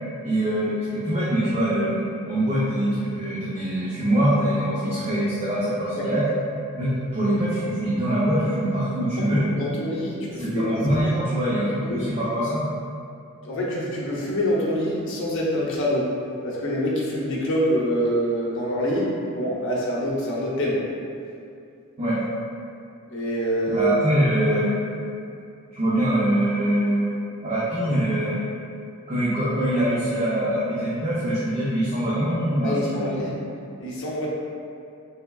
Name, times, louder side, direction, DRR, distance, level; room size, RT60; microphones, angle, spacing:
voice 1, 0.2-2.0 2.3-6.2 6.8-9.5 10.4-12.7 22.0-22.2 23.7-24.7 25.7-27.1 27.4-28.4 29.1-33.1, right 1 dB, 25° right, -11 dB, 0.6 m, -23 dB
voice 2, 9.6-11.1 11.9-12.1 13.4-16.1 16.4-20.8 23.1-23.9 32.6-33.3 33.8-34.3, equal, 60° left, -5 dB, 0.7 m, -25 dB
3.5 x 3.3 x 2.3 m, 2.5 s
head